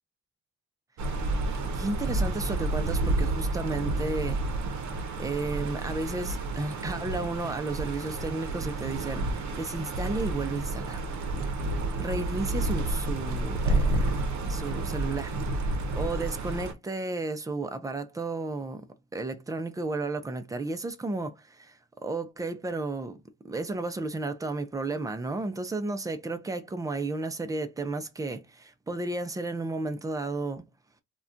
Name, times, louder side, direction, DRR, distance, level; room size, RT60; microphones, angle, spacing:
sound 1, 1.0-16.7, right 2 dB, 60° right, 0.6 m, -30 dB
voice 1, 1.5-4.4 5.2-11.1 12.0-14.1 14.5-30.6, right 2 dB, 10° right, 0.3 m, -33 dB
2.3 x 2.2 x 3.6 m
cardioid pair, 120°, 32 cm